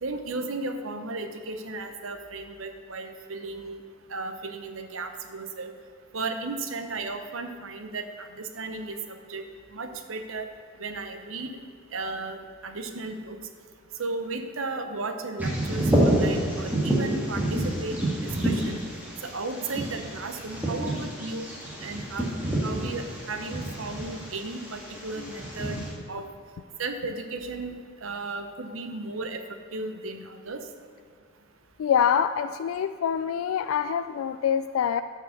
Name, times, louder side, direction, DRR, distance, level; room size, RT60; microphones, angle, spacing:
voice 1, 0.0-3.8 4.1-5.7 6.1-9.4 9.7-10.5 10.8-11.6 11.9-13.4 14.0-18.8 19.2-21.5 21.8-22.3 22.6-25.8 26.1-26.3 26.8-27.7 28.0-29.4 29.7-30.6, right 3 dB, 80° right, 6 dB, 0.9 m, -35 dB
Bird vocalization bird call bird song, 15.4-25.9, right 1 dB, 10° right, 1.8 m, -28 dB
voice 2, 31.8-35.0, left 8 dB, 90° left, 12 dB, 0.3 m, -25 dB
11.0 x 4.8 x 7.0 m, 2.1 s
head